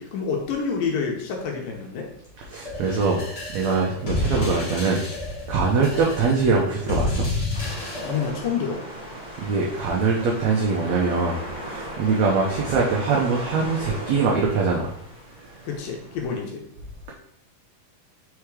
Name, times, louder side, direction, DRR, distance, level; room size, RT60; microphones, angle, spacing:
voice 1, 0.0-2.1 5.7-5.9 8.0-8.8 15.6-16.7, left 6 dB, 75° left, 1 dB, 2.6 m, -28 dB
voice 2, 2.5-3.2 3.5-5.0 5.5-7.3 9.4-14.9, right 4 dB, 80° right, -2 dB, 1.5 m, -23 dB
sound 1, 2.7-8.3, left 2 dB, 40° left, 1.6 m, -29 dB
sound 2, 7.5-16.4, equal, 5° right, 0.7 m, -37 dB
6.2 x 3.6 x 4.8 m, 0.71 s
omnidirectional pair, 4.2 m